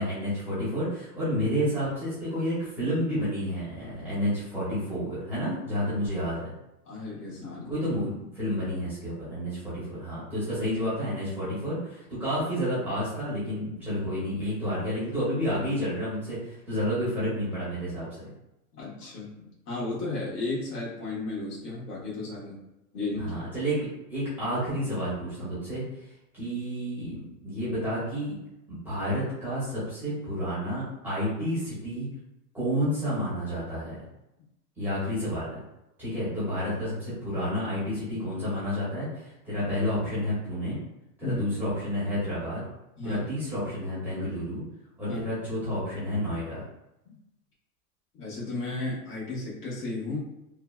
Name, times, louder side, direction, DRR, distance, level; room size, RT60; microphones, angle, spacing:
voice 1, 0.0-6.5 7.6-18.3 23.1-25.8 26.3-28.4 28.7-32.1 32.5-34.0 34.8-35.6 36.0-40.8 41.2-42.6 43.0-44.6 45.0-46.6, equal, 5° right, -11 dB, 0.6 m, -30 dB
voice 2, 6.9-7.8 18.8-22.6 22.9-23.4 41.2-41.4 43.0-43.3 45.1-45.2 47.0-47.2 48.1-50.2, left 2 dB, 65° left, -6 dB, 1.4 m, -34 dB
3.2 x 2.1 x 2.3 m, 0.90 s
supercardioid pair, 150°, 49 cm